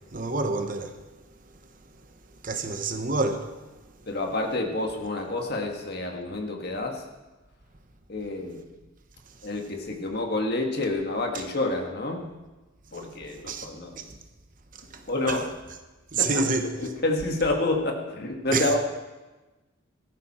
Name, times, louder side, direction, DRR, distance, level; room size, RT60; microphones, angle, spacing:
voice 1, 0.1-1.0 2.4-3.6 11.3-11.4 13.5-13.7 14.0-14.1 14.9-15.4 16.1-16.7 18.5-18.8, right 3 dB, 40° right, 1.0 m, -28 dB
voice 2, 4.1-7.0 8.1-8.6 9.4-12.3 12.9-14.0 15.1-15.5 16.2-16.4 16.8-18.8, left 2 dB, 50° left, 1.9 m, -28 dB
17.0 x 14.0 x 4.4 m
head